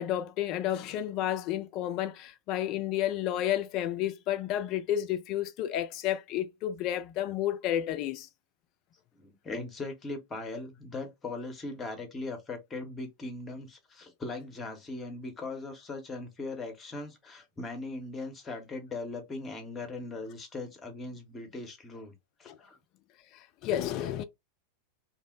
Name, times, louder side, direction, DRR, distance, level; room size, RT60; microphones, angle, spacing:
voice 1, 0.0-8.3 22.5-22.6 23.6-24.2, left 11 dB, 40° left, 0.3 m, -31 dB
voice 2, 9.1-22.8, left 3 dB, 20° left, 0.8 m, -39 dB
2.5 x 2.0 x 2.4 m
figure-of-eight pair, 90°, 0 cm